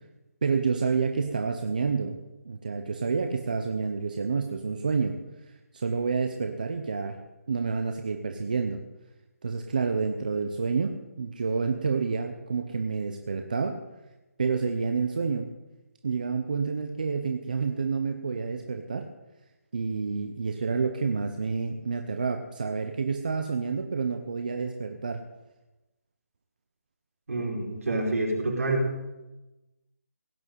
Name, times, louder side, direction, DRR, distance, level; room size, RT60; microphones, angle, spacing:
voice 1, 0.4-2.2 2.4-5.2 5.5-7.2 7.5-8.8 9.4-13.8 14.4-15.5 16.0-19.1 19.7-25.2, right 5 dB, 30° right, 6 dB, 0.8 m, -29 dB
voice 2, 27.3-28.9, right 1 dB, 70° right, -1 dB, 5.0 m, -27 dB
17.0 x 6.2 x 9.2 m, 1.0 s
hypercardioid pair, 180°, 8 cm